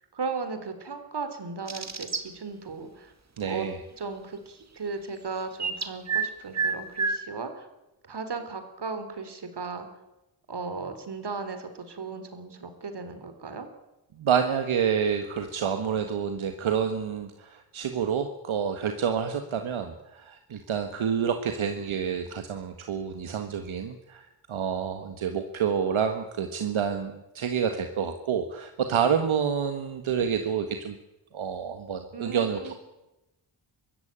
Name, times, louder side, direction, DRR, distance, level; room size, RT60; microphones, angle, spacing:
voice 1, 0.1-3.1 3.5-3.7 4.0-7.7 8.0-9.9 10.5-13.7 32.1-32.7, right 4 dB, 55° right, 9 dB, 3.7 m, -36 dB
sound 1, 1.7-2.2 5.6-6.3 6.5-7.2, right 5 dB, 35° right, 2.1 m, -28 dB
voice 2, 3.4-3.8 14.2-31.0 31.3-32.7, right 7 dB, 75° right, 7 dB, 1.7 m, -28 dB
24.0 x 14.0 x 9.0 m, 0.98 s
cardioid pair, 70°, 48 cm